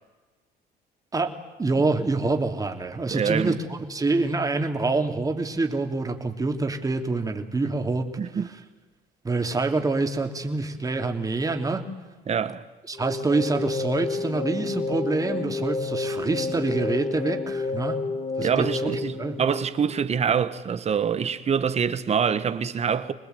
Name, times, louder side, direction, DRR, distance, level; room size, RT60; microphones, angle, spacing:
voice 1, 1.6-8.1 9.2-11.8 12.9-18.0 18.4-18.9 19.2-19.4, right 3 dB, 20° right, 3.0 m, -26 dB
voice 2, 3.1-3.6 8.2-8.5 12.3-12.7 18.4-23.1, right 7 dB, 40° right, 1.6 m, -25 dB
sound 1, 13.0-20.2, left 3 dB, 40° left, 2.5 m, -30 dB
25.5 x 20.5 x 9.5 m
cardioid pair, 110°, 17 cm